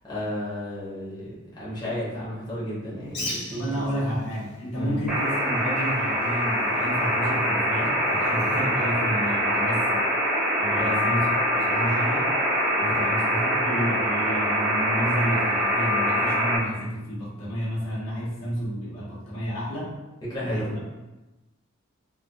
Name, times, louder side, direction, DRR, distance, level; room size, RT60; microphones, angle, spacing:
voice 1, 0.0-3.8 4.8-5.0 7.8-7.9 10.8-11.0 12.9-13.1 20.2-20.7, left 1 dB, 20° left, -9 dB, 0.8 m, -33 dB
Bird, 3.0-9.7, left 1 dB, 50° left, 1.1 m, -42 dB
voice 2, 3.5-10.0 10.6-12.4 12.8-20.0 20.4-20.7, equal, 80° left, -7 dB, 0.9 m, -31 dB
sound 1, 5.1-16.6, equal, 5° right, 0.4 m, -24 dB
2.4 x 2.2 x 2.5 m, 1.1 s
head